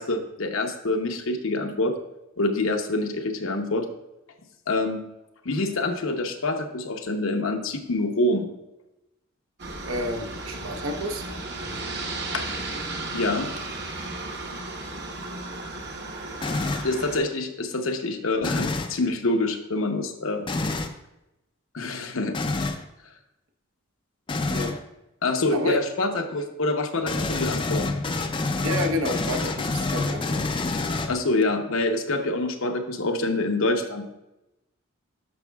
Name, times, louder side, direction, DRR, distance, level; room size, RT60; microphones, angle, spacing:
voice 1, 0.0-1.9 2.4-3.9 4.7-5.0 5.4-8.5 12.3-12.4 13.1-13.5 16.8-20.5 21.7-22.4 25.2-27.9 31.1-34.0, left 2 dB, 75° left, 5 dB, 0.9 m, -26 dB
Aircraft, 9.6-17.2, right 2 dB, 50° right, 1.0 m, -34 dB
voice 2, 9.8-11.3 24.5-24.7 25.5-25.8 28.6-30.5, left 1 dB, 75° right, 4 dB, 1.0 m, -29 dB
sound 1, 16.4-17.0 18.4-19.0 20.5-20.9 22.3-22.8 24.3-24.8 27.0-31.4, left 3 dB, 25° left, 0.4 m, -27 dB
10.5 x 6.4 x 2.3 m, 0.93 s
head